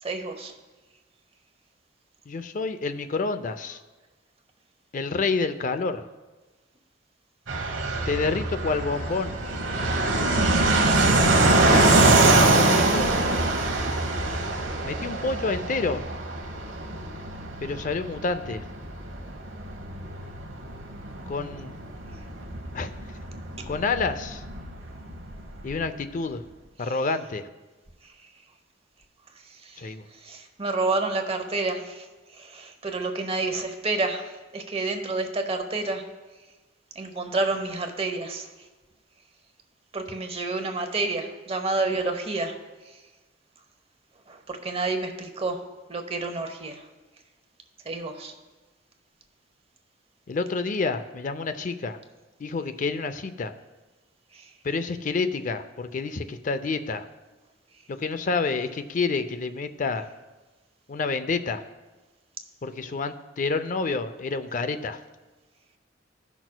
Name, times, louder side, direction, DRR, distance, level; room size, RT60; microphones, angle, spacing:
voice 1, 0.0-0.5 26.8-26.9 28.0-28.3 29.4-36.0 36.9-38.7 39.9-42.6 42.8-43.0 44.3-45.6 45.9-46.9 47.8-48.3 54.3-54.5, right 3 dB, 30° right, 6 dB, 0.9 m, -30 dB
voice 2, 2.3-3.8 4.9-6.0 8.1-9.4 11.0-13.1 14.8-16.0 17.6-18.6 21.3-21.7 22.7-22.9 23.7-24.4 25.6-26.4 26.8-27.5 29.8-30.1 50.3-52.0 52.4-53.5 54.6-57.0 57.9-60.1 60.9-61.6 62.6-65.0, left 4 dB, 45° left, 11 dB, 0.5 m, -28 dB
Fixed-wing aircraft airplane, 7.5-25.8, right 2 dB, 80° right, 1.0 m, -24 dB
17.0 x 6.1 x 2.2 m, 1.2 s
head